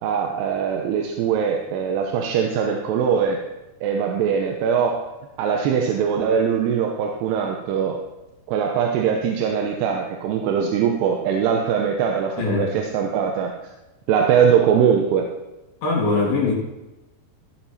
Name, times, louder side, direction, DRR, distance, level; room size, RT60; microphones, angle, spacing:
voice 1, 0.0-3.4 3.8-5.0 5.4-8.0 8.5-13.5 14.1-15.3, right 7 dB, 80° right, 2 dB, 3.0 m, -21 dB
voice 2, 12.4-12.7 15.8-16.5, left 4 dB, 90° left, -5 dB, 5.3 m, -21 dB
16.0 x 8.0 x 4.3 m, 1.0 s
omnidirectional pair, 4.8 m